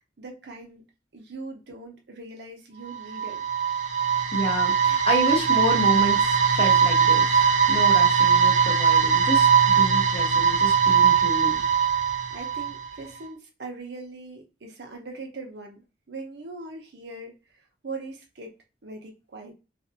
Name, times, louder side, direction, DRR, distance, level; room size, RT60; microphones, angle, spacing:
voice 1, 0.2-0.8 1.1-3.5 12.3-15.8 16.1-18.5 18.8-19.5, right 3 dB, 65° right, 0.7 m, -40 dB
sound 1, 2.9-13.0, right 7 dB, 40° right, 0.3 m, -20 dB
voice 2, 4.3-11.6, equal, 35° left, 0.9 m, -29 dB
2.5 x 2.1 x 2.7 m
head